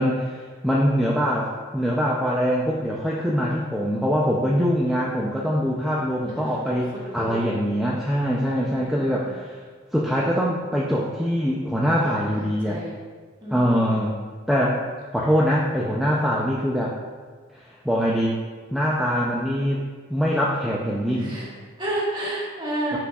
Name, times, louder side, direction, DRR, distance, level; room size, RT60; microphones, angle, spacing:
voice 1, 0.0-9.6 9.9-12.8 13.5-14.1 14.5-14.8 15.1-17.0 17.8-18.4 18.7-21.4 22.9-23.0, equal, ahead, -5 dB, 0.4 m, -23 dB
voice 2, 4.9-5.3 6.3-6.4 6.9-7.5 8.6-9.3 11.9-13.0 13.4-13.9 21.1-23.0, right 1 dB, 20° right, -6 dB, 1.5 m, -32 dB
10.0 x 4.8 x 2.3 m, 1.5 s
head